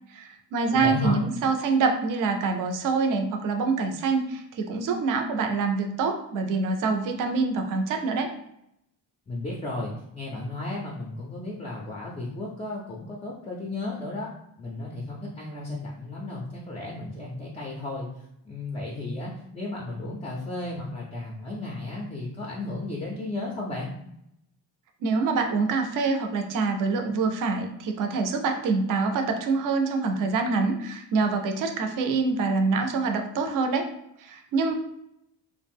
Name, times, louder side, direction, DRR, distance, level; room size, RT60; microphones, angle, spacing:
voice 1, 0.1-8.3 25.0-33.9 34.2-34.7, right 4 dB, 45° right, 5 dB, 0.5 m, -25 dB
voice 2, 0.7-1.2 9.3-14.3 14.6-23.9, left 2 dB, 15° left, -3 dB, 0.3 m, -34 dB
2.4 x 2.0 x 3.4 m, 0.78 s
cardioid pair, 115°, 45 cm